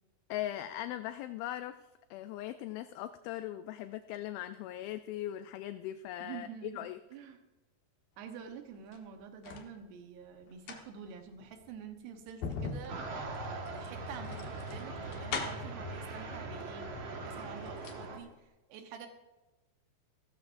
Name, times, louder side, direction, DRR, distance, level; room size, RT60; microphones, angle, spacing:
voice 1, 0.3-1.8 2.1-7.0, left 13 dB, 80° left, 10 dB, 2.2 m, -39 dB
voice 2, 6.2-7.4 8.2-19.1, right 7 dB, 85° right, 5 dB, 3.2 m, -48 dB
sound 1, 8.7-9.7 10.4-15.8 16.8-16.9 17.2-18.1 18.3-18.4, left 5 dB, 65° left, 2.9 m, -41 dB
sound 2, 12.9-18.2, right 2 dB, 50° right, 2.1 m, -41 dB
17.0 x 14.0 x 2.6 m, 1.1 s
omnidirectional pair, 4.6 m